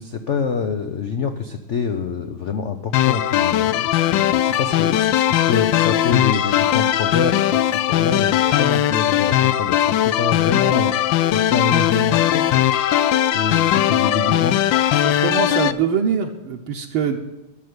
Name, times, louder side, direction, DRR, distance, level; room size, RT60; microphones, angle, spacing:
voice 1, 0.0-12.6 13.2-14.6, left 5 dB, 90° left, 8 dB, 0.6 m, -26 dB
sound 1, 2.9-15.7, left 12 dB, 75° left, 1.2 m, -19 dB
voice 2, 14.9-17.2, right 7 dB, 75° right, 1 dB, 1.8 m, -23 dB
12.5 x 6.6 x 9.5 m, 1.0 s
omnidirectional pair, 2.3 m